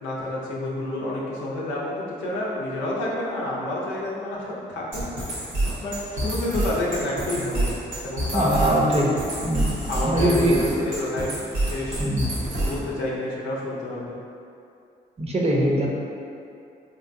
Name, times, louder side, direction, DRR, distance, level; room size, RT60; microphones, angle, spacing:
voice 1, 0.0-5.0 5.8-7.7 8.0-9.1 9.9-12.0 12.5-14.2, left 1 dB, 90° left, -5 dB, 0.6 m, -29 dB
sound 1, 4.9-12.9, right 1 dB, 85° right, 0.8 m, -27 dB
voice 2, 8.3-9.1 9.4-10.7 12.0-12.4 15.2-15.9, right 1 dB, 35° right, -2 dB, 0.6 m, -22 dB
3.4 x 2.8 x 2.6 m, 2.6 s
supercardioid pair, 45°, 19 cm